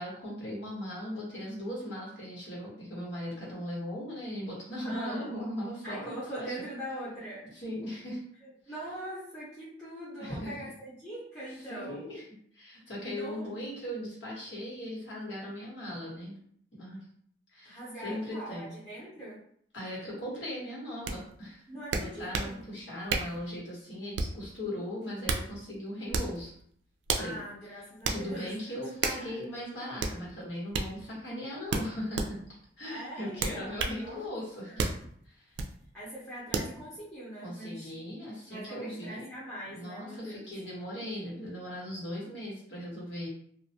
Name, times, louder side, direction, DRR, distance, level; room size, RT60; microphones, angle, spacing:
voice 1, 0.0-6.6 7.5-8.2 10.2-10.5 11.7-12.2 12.5-16.4 16.8-17.0 17.5-18.7 19.7-21.6 21.9-26.5 27.1-27.4 28.1-32.4 32.8-34.8 35.2-35.5 37.4-39.3 39.7-43.3, equal, 85° left, -5 dB, 1.2 m, -38 dB
voice 2, 4.8-5.3 5.8-7.5 8.4-12.0 13.0-13.5 17.6-19.4 21.7-22.6 27.2-28.8 29.2-29.4 32.8-34.3 34.7-34.9 35.9-37.9 38.5-40.5, right 1 dB, 10° left, -11 dB, 0.7 m, -42 dB
sound 1, 21.1-21.2 21.9-22.5 23.1-23.4 24.1-24.4 25.0-25.5 26.1-26.4 27.1-27.3 28.0-28.2 29.0-29.2 30.0-30.2 30.7-30.9 31.7-32.3 33.4-34.0 34.8-35.0 35.6-35.7 36.5-36.7, right 4 dB, 90° right, 0.3 m, -31 dB
2.3 x 2.1 x 2.7 m, 0.64 s
head